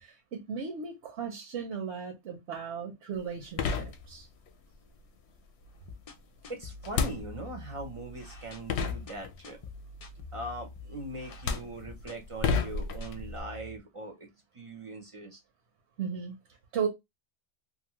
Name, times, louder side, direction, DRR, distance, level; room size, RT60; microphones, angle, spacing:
voice 1, 0.0-4.3 16.0-16.3 16.7-16.9, right 6 dB, 70° right, 1.0 m, -36 dB
sound 1, 3.2-3.3 3.6-4.5 6.8-7.7 8.4-8.5 8.7-9.6 10.7-10.9 11.3-13.4, left 5 dB, 70° left, 0.8 m, -32 dB
sound 2, 5.6-13.8, left 3 dB, 50° left, 0.4 m, -47 dB
voice 2, 6.5-9.6 10.3-14.3 14.5-15.4, right 1 dB, 35° right, 0.5 m, -41 dB
2.6 x 2.6 x 2.9 m
omnidirectional pair, 1.2 m